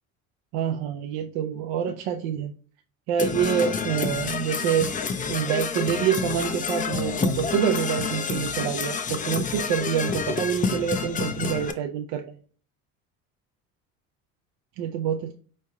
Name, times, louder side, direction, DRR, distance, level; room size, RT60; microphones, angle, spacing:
voice 1, 0.5-2.5 3.1-4.9 5.3-12.4 14.8-15.3, right 9 dB, 70° right, 3 dB, 0.5 m, -26 dB
Percussion / Brass instrument, 3.2-11.7, left 5 dB, 20° left, 0.4 m, -28 dB
4.4 x 3.2 x 2.3 m, 0.43 s
hypercardioid pair, 70°, 38 cm